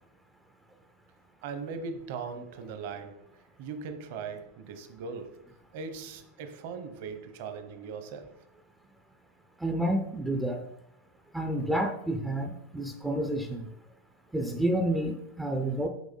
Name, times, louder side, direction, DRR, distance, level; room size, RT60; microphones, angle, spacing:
voice 1, 1.4-5.4 5.7-8.3, right 5 dB, 45° right, 0.9 m, -39 dB
voice 2, 9.6-10.6 11.3-13.7 14.3-15.9, right 1 dB, 5° right, 0.4 m, -29 dB
6.3 x 5.5 x 5.3 m
supercardioid pair, 175°, 0 cm